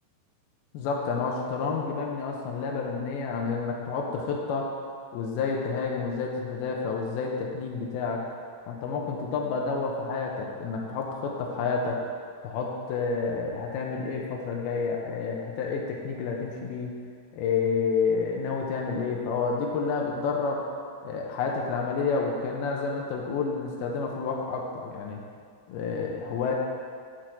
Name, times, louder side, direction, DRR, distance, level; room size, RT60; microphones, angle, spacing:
voice 1, 0.7-4.7 5.1-8.2 8.7-12.0 12.4-16.9 17.3-20.6 21.0-25.2 25.7-26.5, left 5 dB, 85° left, -1 dB, 2.2 m, -29 dB
10.0 x 6.4 x 4.4 m, 2.1 s
omnidirectional pair, 5.5 m